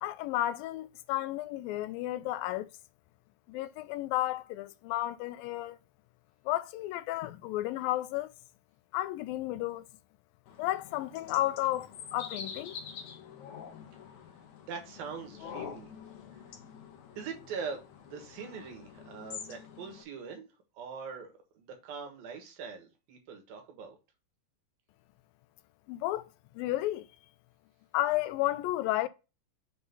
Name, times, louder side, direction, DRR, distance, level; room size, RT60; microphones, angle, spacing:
voice 1, 0.0-2.7 3.5-5.8 6.5-8.3 8.9-9.8 10.6-12.8 25.9-26.2 26.6-27.1 27.9-29.1, left 15 dB, 85° left, 2.3 m, -32 dB
sound 1, 10.5-20.0, left 7 dB, 65° left, 2.2 m, -46 dB
voice 2, 14.6-15.9 17.2-17.8 18.1-20.5 20.8-21.3 21.5-24.0, right 5 dB, 80° right, 3.4 m, -42 dB
6.9 x 3.7 x 5.5 m
omnidirectional pair, 4.1 m